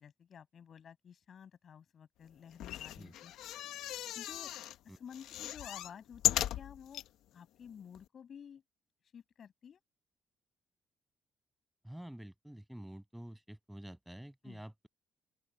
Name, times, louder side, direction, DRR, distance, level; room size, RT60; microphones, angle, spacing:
voice 1, 0.0-3.3 3.8-4.5 4.8-7.0 7.3-8.6 9.1-9.8 14.4-14.6, left 7 dB, 55° left, 7.2 m, -52 dB
sound 1, 2.5-4.8 5.1-7.1 7.7-7.8 7.9-8.0, left 12 dB, 85° left, 0.9 m, -36 dB
voice 2, 11.8-14.9, right 1 dB, 5° right, 6.9 m, -48 dB
open air
cardioid pair, 90°, 0 cm